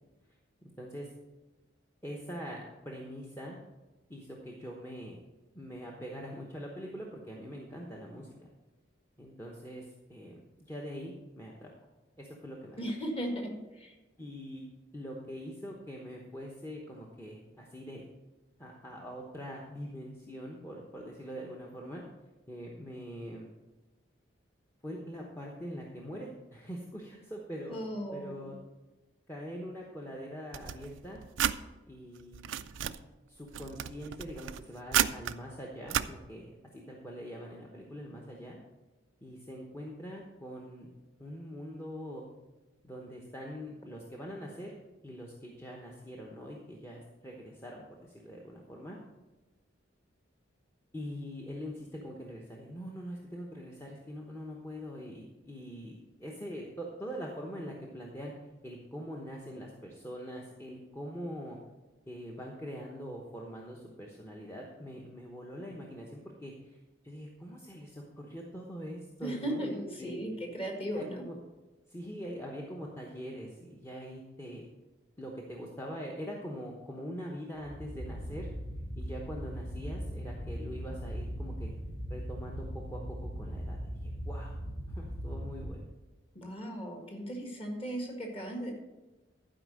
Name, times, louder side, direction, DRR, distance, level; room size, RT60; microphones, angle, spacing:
voice 1, 0.8-1.1 2.0-3.6 4.1-5.2 5.5-8.5 9.2-9.8 10.1-11.7 12.2-12.8 14.2-14.6 14.9-18.0 18.6-22.0 22.5-23.5 24.8-27.8 28.1-28.6 29.3-31.2 31.9-32.6 32.8-32.9 33.3-38.6 39.2-40.9 41.2-42.2 42.8-44.7 45.0-49.0 50.9-58.3 58.6-61.6 62.1-66.8 67.0-70.2 70.9-71.3 71.9-74.7 75.2-78.5 79.0-81.7 82.1-84.6 84.9-85.8, equal, 15° left, -2 dB, 0.9 m, -43 dB
voice 2, 12.8-13.9 27.7-28.5 69.2-71.2 86.4-88.7, equal, 30° left, 2 dB, 1.8 m, -37 dB
sound 1, 30.5-31.6 32.2-33.0 33.5-35.3 35.9-36.1, right 10 dB, 85° right, 0.4 m, -32 dB
sound 2, 77.6-85.7, equal, 75° left, 3.7 m, -39 dB
11.5 x 5.0 x 6.4 m, 1.2 s
head